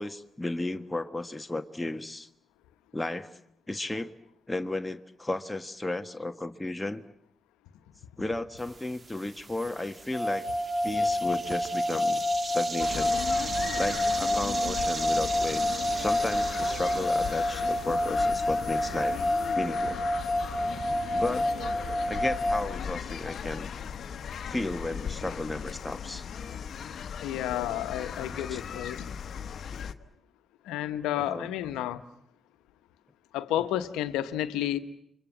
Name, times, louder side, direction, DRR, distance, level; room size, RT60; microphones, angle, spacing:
voice 1, 0.0-2.3 2.9-3.3 3.7-4.1 4.5-7.0 8.2-10.5 10.8-13.1 13.4-19.2 19.5-20.0 21.1-21.5 22.1-23.7 24.5-26.2 28.2-28.6 31.1-31.5, left 2 dB, 15° left, 7 dB, 1.5 m, -34 dB
sound 1, 8.6-19.5, right 4 dB, 45° right, 1.6 m, -40 dB
sound 2, 10.1-22.6, left 1 dB, ahead, 5.7 m, -28 dB
sound 3, 12.8-29.9, left 7 dB, 65° left, 1.2 m, -38 dB
voice 2, 27.2-29.1 30.7-32.0 33.3-34.8, left 12 dB, 85° left, 11 dB, 1.1 m, -31 dB
29.5 x 24.5 x 7.4 m, 0.73 s
hypercardioid pair, 45°, 0 cm